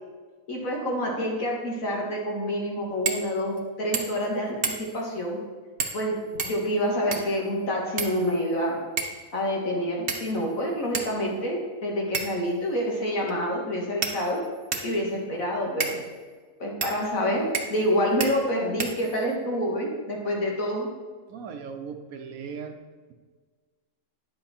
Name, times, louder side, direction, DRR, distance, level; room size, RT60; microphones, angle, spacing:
voice 1, 0.5-5.4 5.9-6.2 6.4-8.8 9.3-14.4 14.8-16.0 16.6-20.9, equal, 65° left, -1 dB, 2.3 m, -27 dB
sound 1, 3.0-3.3 3.6-3.7 3.9-4.3 4.6-5.0 5.8-6.0 6.4-7.4 8.0-8.6 9.0-9.2 10.1-10.5 10.9-11.1 12.1-12.5 13.3-13.4 14.0-14.9 15.8-16.0 16.8-17.0 17.5-17.9 18.2-18.3 18.8-19.4, right 5 dB, 50° right, 1.2 m, -31 dB
voice 2, 21.3-22.8, right 6 dB, 75° right, 6 dB, 1.3 m, -38 dB
9.9 x 7.8 x 4.3 m, 1.5 s
omnidirectional pair, 1.5 m